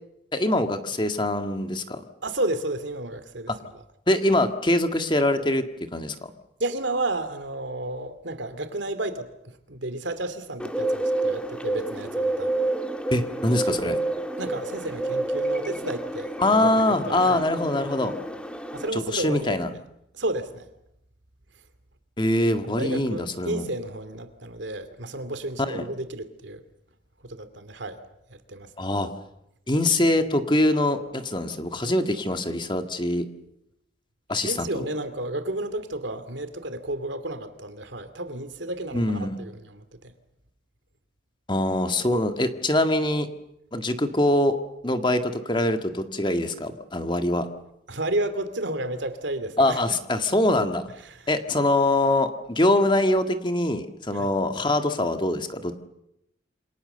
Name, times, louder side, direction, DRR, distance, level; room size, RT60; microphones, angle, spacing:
voice 1, 0.3-2.0 4.1-5.6 5.9-6.2 13.1-14.0 16.4-18.2 18.9-19.7 22.2-23.6 25.6-25.8 28.8-29.1 29.7-33.3 34.3-34.9 38.9-39.4 41.5-43.3 43.7-44.6 44.8-47.5 49.6-50.8 51.3-55.9, left 1 dB, 25° left, 7 dB, 1.8 m, -23 dB
voice 2, 2.2-3.8 6.6-12.5 13.5-14.0 14.4-16.3 16.6-17.4 18.7-19.6 20.1-20.7 22.6-26.6 27.2-28.0 28.3-28.9 34.4-40.1 47.9-49.8 51.0-51.3 54.1-54.3, right 1 dB, 75° right, 11 dB, 2.6 m, -32 dB
Bird, 10.6-18.9, right 2 dB, 5° left, 1.7 m, -29 dB
28.0 x 26.0 x 6.9 m, 0.81 s
head